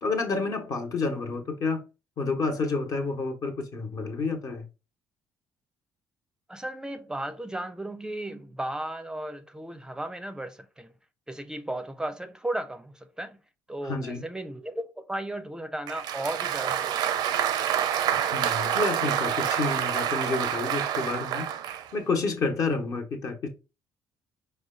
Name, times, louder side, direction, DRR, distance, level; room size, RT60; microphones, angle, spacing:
voice 1, 0.0-1.8 2.2-4.7 13.8-14.2 18.1-21.5 21.9-23.5, left 3 dB, 55° left, 1.1 m, -29 dB
voice 2, 6.5-10.9 11.3-13.4 13.7-17.2, right 1 dB, 10° right, 0.5 m, -35 dB
Applause, 15.9-21.9, right 10 dB, 75° right, 0.5 m, -27 dB
4.9 x 2.2 x 3.7 m
supercardioid pair, 75°, 7 cm